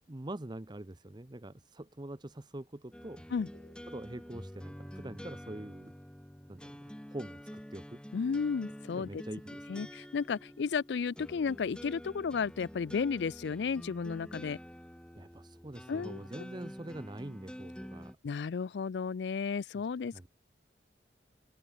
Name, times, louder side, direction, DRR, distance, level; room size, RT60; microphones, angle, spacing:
voice 1, 0.1-3.2 3.9-5.9 6.5-8.0 8.9-9.9 15.1-18.2 20.1-20.3, right 1 dB, 25° right, 0.9 m, -44 dB
sound 1, 2.9-18.1, equal, 5° left, 1.4 m, -48 dB
voice 2, 8.1-9.2 9.7-14.6 15.9-16.2 18.2-20.3, left 5 dB, 70° left, 0.4 m, -33 dB
open air
head